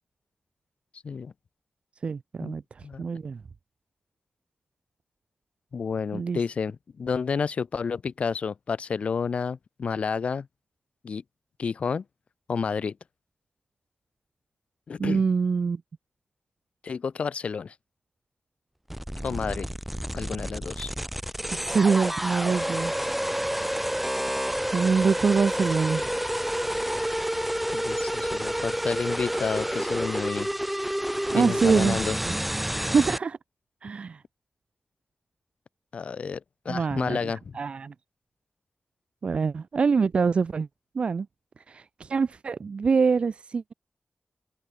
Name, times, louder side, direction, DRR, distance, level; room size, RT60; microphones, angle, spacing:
voice 1, 2.0-3.4 6.1-6.4 15.0-15.8 21.6-23.0 24.7-26.1 31.3-32.0 32.2-32.5 32.8-33.4 33.8-34.2 36.7-37.9 39.2-40.7 40.9-41.3 41.7-43.7, right 5 dB, 65° right, 0.5 m, -25 dB
voice 2, 5.7-10.5 11.0-11.2 11.6-12.0 12.5-12.9 14.9-15.2 16.8-17.7 19.2-19.7 20.1-20.9 27.7-30.5 31.3-32.1 35.9-37.6, left 5 dB, 80° left, 2.7 m, -30 dB
sound 1, 18.9-33.2, equal, 5° right, 1.3 m, -29 dB
wide cardioid pair, 100°, 2 cm